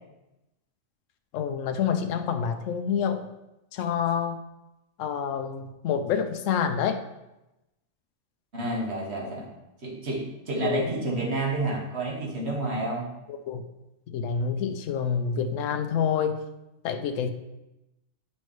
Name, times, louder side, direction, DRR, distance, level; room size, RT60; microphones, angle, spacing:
voice 1, 1.3-3.3 3.7-4.4 5.0-7.0 10.6-10.9 13.3-13.6 14.1-16.4 16.8-17.3, left 7 dB, 75° left, 7 dB, 1.0 m, -27 dB
voice 2, 8.5-9.5 9.8-13.1, right 2 dB, 55° right, -2 dB, 1.8 m, -29 dB
9.8 x 5.3 x 3.1 m, 0.96 s
omnidirectional pair, 1.4 m